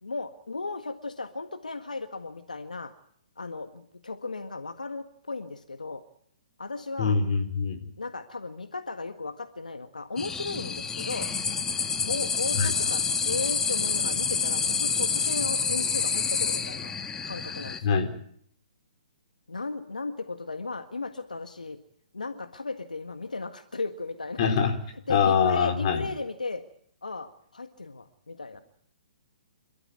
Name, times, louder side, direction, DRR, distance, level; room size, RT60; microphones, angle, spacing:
voice 1, 0.0-2.9 3.4-6.0 6.6-7.2 8.0-11.3 12.0-16.9 17.2-17.9 19.5-21.8 22.1-24.5 25.1-26.6 27.0-28.6, left 3 dB, 90° left, 8 dB, 1.7 m, -36 dB
voice 2, 7.0-7.8 12.5-12.7 17.8-18.1 24.4-24.7 25.1-26.0, left 6 dB, 45° left, 6 dB, 4.3 m, -24 dB
sound 1, 10.2-17.8, left 5 dB, 15° left, 1.6 m, -28 dB
28.5 x 13.5 x 9.6 m, 0.67 s
figure-of-eight pair, 130°, 4 cm